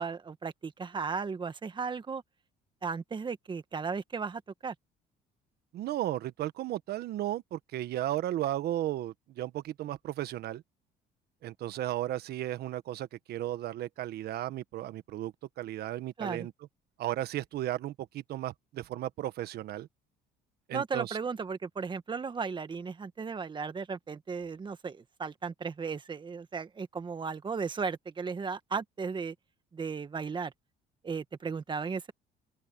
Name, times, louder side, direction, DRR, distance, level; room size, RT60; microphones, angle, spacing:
voice 1, 0.0-2.2 2.8-4.7 16.2-16.5 20.7-29.3 29.7-30.5 31.0-32.1, right 5 dB, 30° right, 1.5 m, -35 dB
voice 2, 5.7-10.6 11.4-16.5 17.0-19.9 20.7-21.2, right 13 dB, 70° right, 1.4 m, -35 dB
open air
cardioid pair, 110°, 17 cm